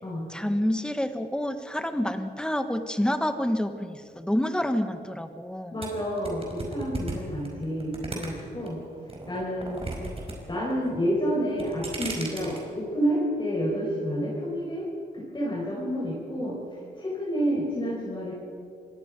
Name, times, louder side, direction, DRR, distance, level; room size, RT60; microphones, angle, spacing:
voice 1, 0.3-5.8, left 1 dB, 5° left, 8 dB, 1.5 m, -28 dB
voice 2, 5.7-8.8 9.3-9.9 10.5-14.9 15.1-16.6 17.0-18.3, equal, 25° left, -5 dB, 5.5 m, -29 dB
sound 1, 5.8-8.7 9.1-10.4 10.6-11.1 11.5-12.6, right 2 dB, 35° right, 4.8 m, -35 dB
25.5 x 20.0 x 5.3 m, 2.5 s
cardioid pair, 95°, 18 cm